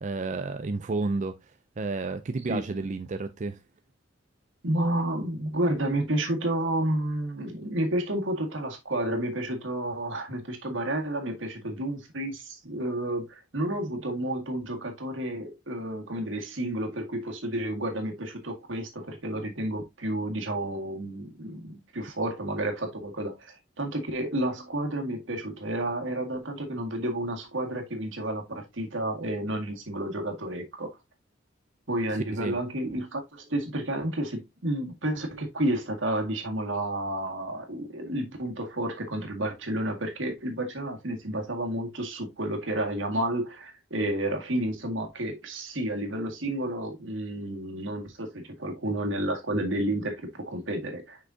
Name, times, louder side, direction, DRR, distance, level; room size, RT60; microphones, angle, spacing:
voice 1, 0.0-1.4 1.8-3.6 32.3-32.6, right 3 dB, 40° right, 0.4 m, -31 dB
voice 2, 4.6-30.9 31.9-51.2, right 1 dB, 80° right, 1.9 m, -31 dB
6.1 x 5.8 x 2.7 m
head